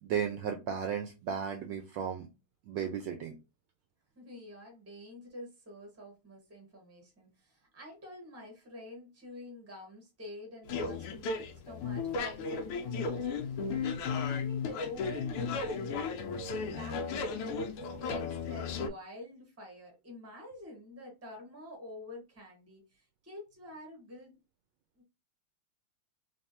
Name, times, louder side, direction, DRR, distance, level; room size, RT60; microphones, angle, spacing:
voice 1, 0.0-2.3 2.6-3.4, right 8 dB, 75° right, 1.1 m, -34 dB
voice 2, 4.1-17.6 18.0-24.3 25.0-25.1, left 1 dB, 10° right, 0.8 m, -48 dB
sound 1, 10.7-18.9, left 5 dB, 90° left, 1.6 m, -35 dB
3.4 x 3.3 x 2.7 m
omnidirectional pair, 2.4 m